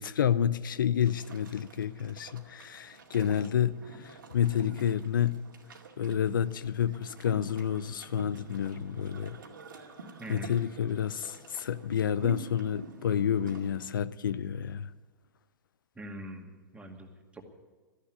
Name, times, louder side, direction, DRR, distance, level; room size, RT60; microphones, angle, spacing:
voice 1, 0.0-5.4 6.0-9.4 10.3-14.9, left 9 dB, 75° left, 0.6 m, -29 dB
sound 1, 1.0-13.9, right 3 dB, 80° right, 2.2 m, -48 dB
voice 2, 10.2-10.5 16.0-17.4, equal, 10° right, 2.2 m, -43 dB
13.5 x 11.0 x 9.8 m
hypercardioid pair, 105°, 11 cm